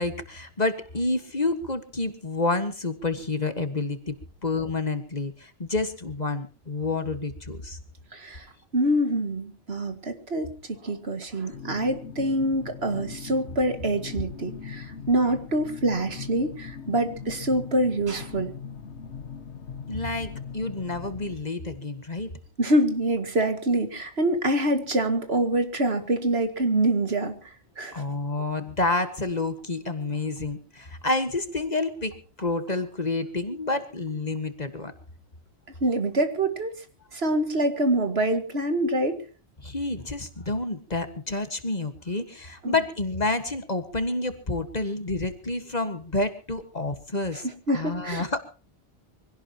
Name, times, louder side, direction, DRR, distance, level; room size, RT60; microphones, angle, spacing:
voice 1, 0.0-4.2 4.4-7.8 19.9-22.3 27.9-34.9 39.6-47.5 47.7-48.4, left 2 dB, 40° left, 9 dB, 1.7 m, -29 dB
voice 2, 8.1-8.5 8.7-18.5 22.6-27.4 27.8-28.0 35.8-36.8 37.1-39.2 42.6-42.8 47.7-48.3, right 1 dB, 65° right, 8 dB, 2.3 m, -25 dB
sound 1, 11.5-21.3, left 6 dB, 80° left, 1.5 m, -40 dB
24.5 x 17.0 x 3.0 m, 0.37 s
omnidirectional pair, 1.1 m